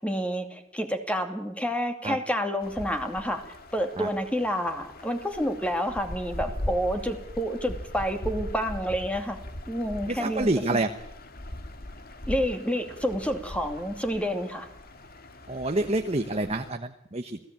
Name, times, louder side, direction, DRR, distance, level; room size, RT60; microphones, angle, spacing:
voice 1, 0.0-9.4 9.7-10.8 12.3-14.7, equal, 5° left, 6 dB, 2.5 m, -29 dB
sound 1, 2.6-16.7, left 1 dB, 50° left, 2.1 m, -40 dB
voice 2, 10.1-10.9 15.5-17.4, right 2 dB, 30° right, 6 dB, 1.1 m, -27 dB
29.0 x 17.5 x 8.9 m, 0.82 s
head